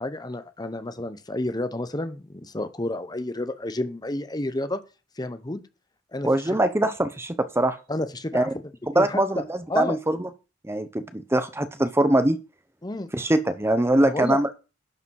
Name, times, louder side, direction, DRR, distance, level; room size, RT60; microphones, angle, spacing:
voice 1, 0.0-4.8 5.2-5.6 6.1-6.3 7.9-8.5 8.9-9.2 9.7-10.0 12.8-13.1 14.0-14.4, left 2 dB, 20° left, 0.9 m, -30 dB
voice 2, 6.2-7.8 8.3-8.5 8.9-10.3 10.7-12.4 13.1-14.5, right 1 dB, 15° right, 0.8 m, -23 dB
11.0 x 5.0 x 6.4 m
head